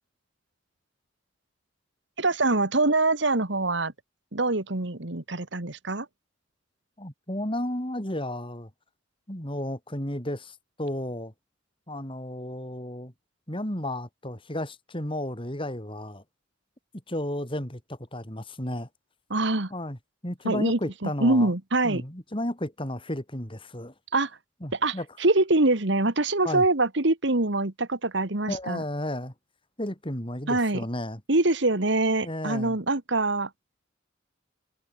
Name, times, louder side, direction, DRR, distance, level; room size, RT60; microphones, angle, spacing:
voice 1, 2.2-3.9 4.3-6.1 19.3-19.7 20.4-22.0 24.1-24.3 24.8-28.8 30.5-30.8 31.3-33.5, right 2 dB, 65° right, 1.9 m, -24 dB
voice 2, 7.0-8.7 9.3-11.3 11.9-13.1 13.5-16.2 17.1-18.9 19.7-20.0 20.2-21.5 21.8-23.9 24.6-25.1 26.4-26.7 28.5-29.3 29.8-31.2 32.2-32.8, left 1 dB, 25° left, 5.0 m, -33 dB
head